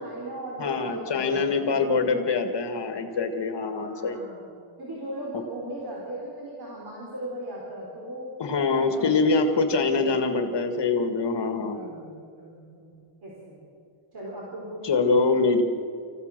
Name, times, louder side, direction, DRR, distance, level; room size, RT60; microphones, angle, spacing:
voice 1, 0.0-2.4 3.8-4.5 4.8-8.3 8.7-9.5 9.7-10.2 11.7-12.9 13.2-13.7 14.1-15.0, right 1 dB, 50° right, -4 dB, 4.5 m, -38 dB
voice 2, 0.6-4.2 5.3-5.4 8.4-11.9 14.8-15.6, left 4 dB, 55° left, 6 dB, 1.9 m, -24 dB
26.0 x 15.5 x 6.7 m, 2.4 s
wide cardioid pair, 125°, 50 cm